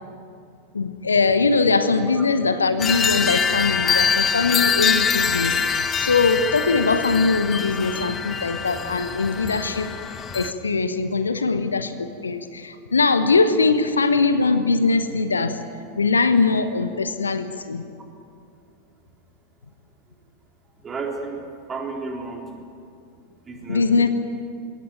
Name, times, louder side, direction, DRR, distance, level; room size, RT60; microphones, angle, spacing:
voice 1, 0.7-9.9 10.3-15.6 16.0-17.8 23.7-24.1, left 4 dB, 75° left, 11 dB, 1.1 m, -21 dB
sound 1, 2.8-10.5, left 6 dB, 25° left, 1.3 m, -24 dB
voice 2, 20.8-22.5 23.5-24.1, right 4 dB, 20° right, 1 dB, 3.6 m, -32 dB
22.0 x 17.5 x 9.2 m, 2.5 s
figure-of-eight pair, 90°, 0 cm